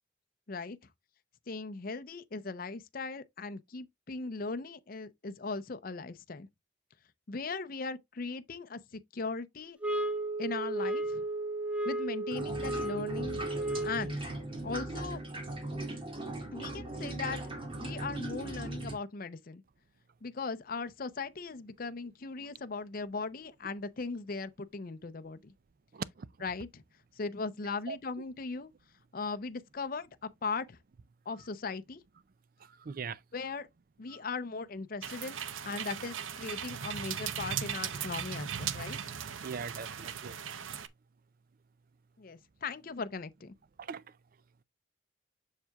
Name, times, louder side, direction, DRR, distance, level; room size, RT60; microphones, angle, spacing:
voice 1, 1.5-6.5 7.3-9.8 10.4-11.2 11.8-13.4 13.8-14.2 14.6-15.2 16.5-17.5 17.8-19.6 20.2-25.5 26.4-26.8 27.1-28.7 29.1-30.8 31.3-32.0 33.3-33.7 34.0-35.4 35.6-39.1 42.2-43.5, left 4 dB, 45° left, 0.6 m, -38 dB
sound 1, 9.8-14.2, right 2 dB, 5° right, 0.8 m, -34 dB
sound 2, 12.3-18.9, right 1 dB, 25° right, 2.2 m, -38 dB
voice 2, 25.9-26.3 27.9-28.0 32.8-33.2 39.4-40.4 43.8-44.0, right 5 dB, 45° right, 0.4 m, -39 dB
sound 3, 35.0-40.9, right 8 dB, 85° right, 0.7 m, -38 dB
7.3 x 6.6 x 2.3 m
head